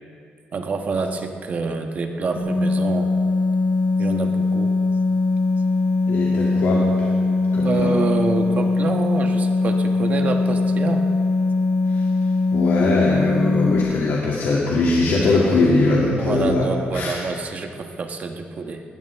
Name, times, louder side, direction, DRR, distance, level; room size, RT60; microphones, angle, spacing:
voice 1, 0.5-3.1 4.0-4.7 7.6-11.0 16.2-18.8, right 4 dB, 40° right, 4 dB, 1.2 m, -27 dB
sound 1, 2.4-13.8, left 3 dB, 60° left, 5.2 m, -21 dB
voice 2, 6.1-6.9 7.5-7.9 11.9-12.1 12.5-16.7 16.9-17.2, left 3 dB, 90° left, -5 dB, 2.5 m, -20 dB
20.0 x 19.5 x 3.6 m, 2.4 s
wide cardioid pair, 180°, 4 cm